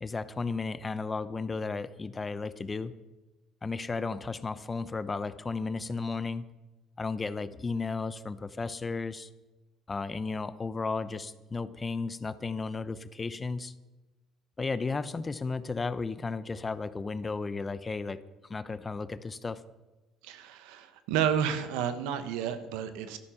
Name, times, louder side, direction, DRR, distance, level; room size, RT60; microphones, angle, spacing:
voice 1, 0.0-2.9 3.6-6.4 7.0-9.3 9.9-13.7 14.6-18.2 18.5-19.6, left 4 dB, 30° left, 14 dB, 0.8 m, -34 dB
voice 2, 20.2-23.2, right 8 dB, 80° right, 10 dB, 1.2 m, -31 dB
13.0 x 11.0 x 5.9 m, 1.1 s
supercardioid pair, 70°, 0 cm